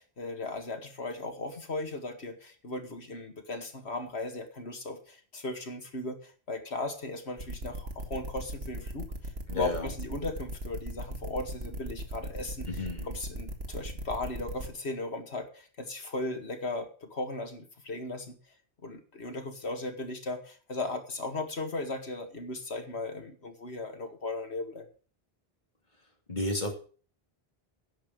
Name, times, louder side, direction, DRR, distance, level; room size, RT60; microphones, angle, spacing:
voice 1, 0.0-12.7 13.1-18.6 18.8-24.9, left 2 dB, 85° left, 5 dB, 2.2 m, -37 dB
sound 1, 7.4-14.7, right 1 dB, 80° right, 2.1 m, -38 dB
voice 2, 9.5-9.9 12.7-13.1 26.3-26.7, left 2 dB, 45° left, 2 dB, 3.0 m, -32 dB
10.5 x 7.1 x 7.8 m, 0.40 s
omnidirectional pair, 1.1 m